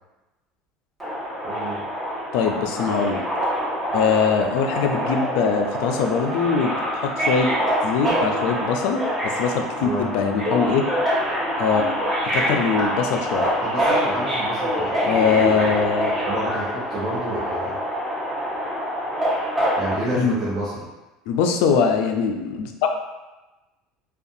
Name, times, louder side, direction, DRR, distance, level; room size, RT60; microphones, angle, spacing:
Subway metro underground, 1.0-20.0, equal, 15° right, 0.9 m, -25 dB
voice 1, 1.4-1.8 9.8-10.1 13.6-15.8 16.2-17.8 19.7-20.9, right 1 dB, 45° right, -9 dB, 0.9 m, -30 dB
voice 2, 2.3-3.2 3.9-7.5 7.8-10.9 11.6-11.8 12.3-13.5 15.0-16.1 20.1-20.4 21.3-22.7, left 6 dB, 75° left, 4 dB, 0.3 m, -22 dB
2.5 x 2.3 x 2.6 m, 1.1 s
supercardioid pair, 100°, 0 cm